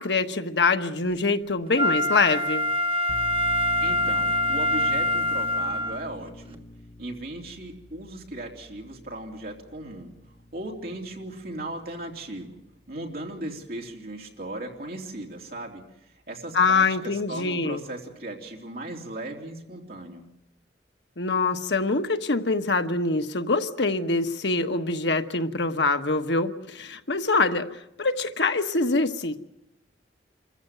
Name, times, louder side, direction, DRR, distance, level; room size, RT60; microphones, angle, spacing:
voice 1, 0.0-2.7 16.5-17.8 21.2-29.4, left 3 dB, 85° left, 7 dB, 1.2 m, -24 dB
Wind instrument woodwind instrument, 1.8-6.0 6.5-6.6, left 1 dB, 30° right, 1.4 m, -25 dB
sound 1, 3.1-14.4, left 1 dB, 40° left, 1.3 m, -45 dB
voice 2, 3.8-6.6 7.0-10.1 10.5-12.6 12.9-20.3, right 1 dB, 55° right, 1 dB, 3.4 m, -37 dB
26.5 x 15.0 x 9.4 m, 0.83 s
head